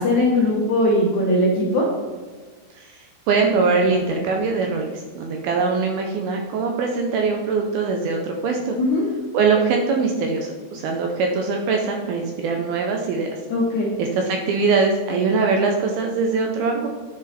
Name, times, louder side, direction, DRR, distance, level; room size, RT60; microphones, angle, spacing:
voice 1, 0.0-1.9 8.8-9.1 13.5-13.9, left 1 dB, 70° left, -3 dB, 1.8 m, -19 dB
voice 2, 3.3-8.8 9.3-13.3 14.0-16.9, right 4 dB, 75° right, 2 dB, 2.3 m, -22 dB
9.9 x 6.2 x 4.2 m, 1.4 s
omnidirectional pair, 5.0 m